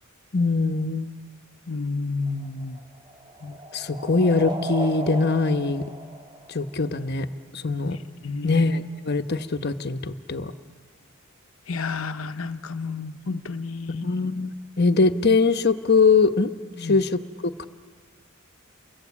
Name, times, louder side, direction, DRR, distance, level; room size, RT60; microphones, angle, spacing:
voice 1, 0.3-1.1 3.4-5.8 6.5-7.3 7.5-8.0 8.4-10.5 13.9-16.5 16.8-17.2 17.6-17.7, left 4 dB, 50° left, 10 dB, 1.0 m, -22 dB
voice 2, 1.7-2.8 8.2-8.6 11.7-14.1 16.8-16.9, left 4 dB, 75° left, 8 dB, 0.9 m, -30 dB
sound 1, 2.3-7.0, right 1 dB, 25° right, 3.1 m, -36 dB
29.0 x 22.0 x 8.5 m, 1.5 s
head